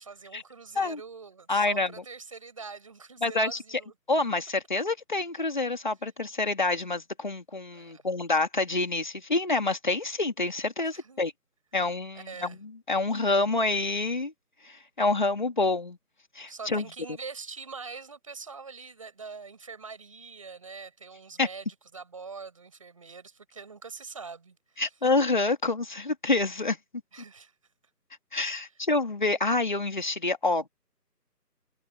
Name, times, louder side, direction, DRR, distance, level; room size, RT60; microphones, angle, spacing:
voice 1, 0.0-3.9 7.7-8.1 10.8-11.3 11.7-11.8 12.1-12.6 16.5-21.7 21.9-24.8 27.1-27.5, right 5 dB, 20° right, 6.6 m, -44 dB
voice 2, 1.5-1.9 3.2-3.6 4.1-11.3 11.7-14.3 14.6-16.0 16.4-16.8 21.4-21.5 24.8-26.8 28.3-30.7, left 3 dB, 30° left, 2.8 m, -27 dB
figure-of-eight pair, 175°, 50 cm